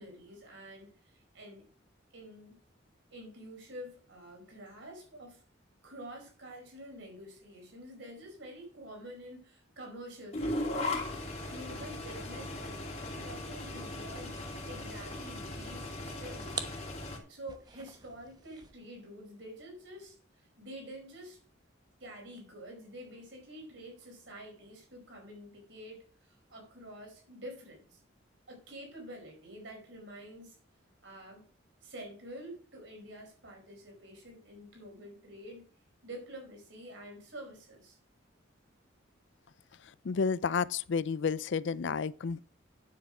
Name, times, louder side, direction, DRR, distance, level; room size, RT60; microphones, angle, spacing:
voice 1, 0.0-1.6 2.1-2.6 3.1-5.4 5.8-10.5 10.8-10.9 11.5-16.6 17.3-21.4 22.0-28.0 28.5-30.6 31.0-31.4 31.8-35.6 36.0-38.0, equal, 65° right, 4.8 m, -48 dB
sound 1, 10.3-17.2, left 2 dB, 35° left, 2.5 m, -38 dB
sound 2, 13.5-18.9, right 4 dB, 20° right, 1.0 m, -47 dB
voice 2, 40.0-42.5, left 5 dB, 65° left, 0.5 m, -31 dB
9.6 x 7.7 x 4.9 m
head